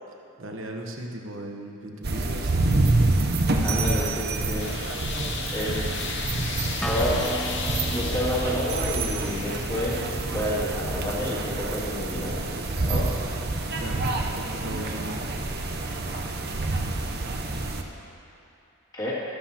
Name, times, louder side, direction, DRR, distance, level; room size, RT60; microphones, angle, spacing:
voice 1, 0.4-2.7 7.1-7.4 13.7-14.1 14.4-15.2, right 1 dB, 65° right, 1 dB, 1.1 m, -36 dB
sound 1, 2.0-17.8, right 2 dB, 50° right, 0.8 m, -27 dB
voice 2, 3.6-4.7 5.5-5.9 6.8-7.2 7.9-10.0 10.3-12.4 12.9-13.1 18.9-19.1, left 1 dB, 20° left, -7 dB, 2.4 m, -29 dB
sound 2, 4.6-10.2, left 6 dB, 55° left, 0.7 m, -36 dB
Acoustic guitar, 6.8-12.0, equal, 5° left, 0.5 m, -38 dB
13.5 x 13.0 x 2.9 m, 2.9 s
head